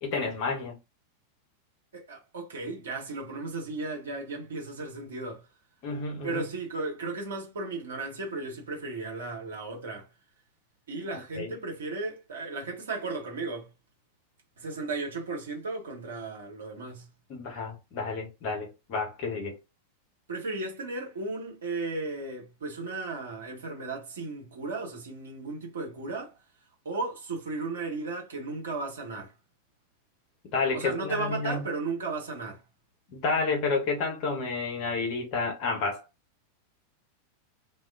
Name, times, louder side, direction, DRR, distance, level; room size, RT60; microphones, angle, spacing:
voice 1, 0.0-0.8 5.8-6.4 11.4-11.5 17.3-19.6 30.5-31.7 33.1-36.0, left 4 dB, 45° left, 0.9 m, -30 dB
voice 2, 1.9-5.4 6.2-10.1 10.9-13.7 14.6-17.1 20.3-26.4 26.8-29.3 30.7-32.6, right 3 dB, 65° right, 1.0 m, -35 dB
2.3 x 2.2 x 2.4 m
figure-of-eight pair, 90°, 0 cm